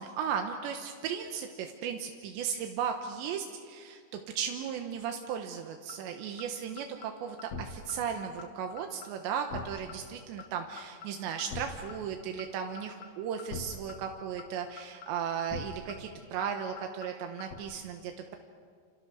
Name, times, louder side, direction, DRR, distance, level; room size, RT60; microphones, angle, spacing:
voice 1, 0.0-4.0 4.4-18.4, right 7 dB, 85° right, 4 dB, 3.4 m, -36 dB
sound 1, 5.9-6.0 6.4-6.5 6.8-7.1 7.4-7.6 7.9-8.0 8.4-8.5 8.8-9.1 9.4-9.6 9.9-10.0 10.4-10.5 10.8-11.1 11.4-11.6 11.9-12.0 12.4-12.5 12.8-13.1 13.4-13.6 13.9-14.0 14.4-14.5 14.8-15.1 15.4-15.6 15.9-16.0 16.4-16.5 16.8-17.1 17.4-17.5, left 5 dB, 50° left, 2.7 m, -41 dB
28.5 x 28.5 x 6.4 m, 2.1 s
omnidirectional pair, 5.0 m